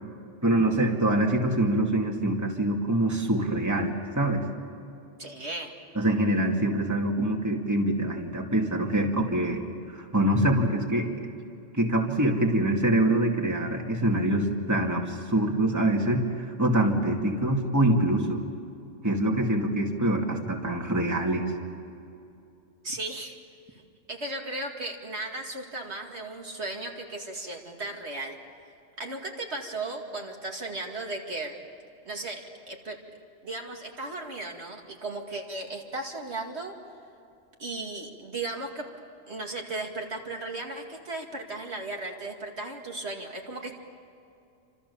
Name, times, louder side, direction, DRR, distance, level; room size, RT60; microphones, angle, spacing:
voice 1, 0.4-4.4 5.9-11.3 11.7-18.4 19.0-21.5, right 1 dB, 15° right, 0 dB, 2.5 m, -25 dB
voice 2, 5.2-5.7 22.8-23.3 23.7-23.8 24.1-28.4 29.0-31.6 32.1-33.0 33.4-36.7 37.6-38.9 39.3-43.8, right 2 dB, 60° right, 1 dB, 2.6 m, -36 dB
29.0 x 26.5 x 7.1 m, 2.6 s
omnidirectional pair, 1.3 m